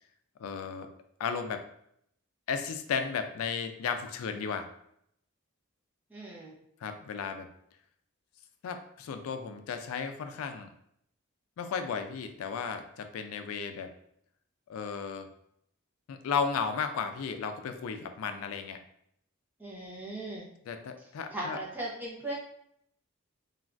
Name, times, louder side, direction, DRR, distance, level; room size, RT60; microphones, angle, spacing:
voice 1, 0.4-0.9 1.2-1.6 2.5-4.7 6.8-7.5 8.6-10.7 11.6-13.9 14.7-15.3 16.1-18.8 20.7-21.6, left 6 dB, 90° left, 7 dB, 0.3 m, -34 dB
voice 2, 6.1-6.5 19.6-20.4 21.3-22.3, right 1 dB, 10° right, -5 dB, 0.6 m, -38 dB
3.3 x 2.3 x 2.4 m, 0.72 s
head